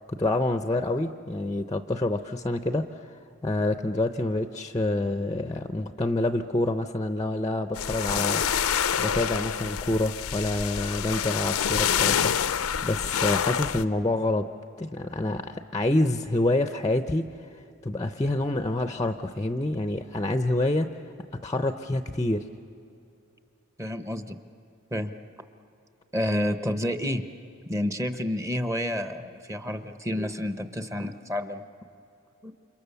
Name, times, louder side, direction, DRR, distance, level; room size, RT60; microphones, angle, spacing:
voice 1, 0.1-3.1 3.4-8.4 9.0-14.5 14.8-17.3 17.5-20.9 21.4-22.5, left 2 dB, 15° left, 8 dB, 0.6 m, -27 dB
sound 1, 7.8-13.8, left 8 dB, 80° left, 0.6 m, -27 dB
voice 2, 23.8-24.4 24.9-25.1 26.1-27.2 27.7-31.6 32.4-32.5, left 1 dB, 15° right, 9 dB, 0.8 m, -29 dB
29.5 x 27.0 x 6.9 m, 2.7 s
head